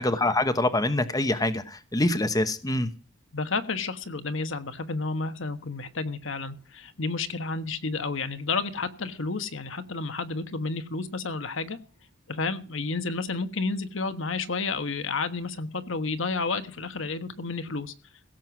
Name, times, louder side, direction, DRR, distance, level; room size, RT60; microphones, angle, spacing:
voice 1, 0.0-2.9, left 1 dB, 20° left, 9 dB, 1.1 m, -25 dB
voice 2, 3.3-11.8 12.3-17.9, left 3 dB, 70° left, 10 dB, 1.3 m, -31 dB
16.5 x 7.6 x 6.2 m, 0.37 s
head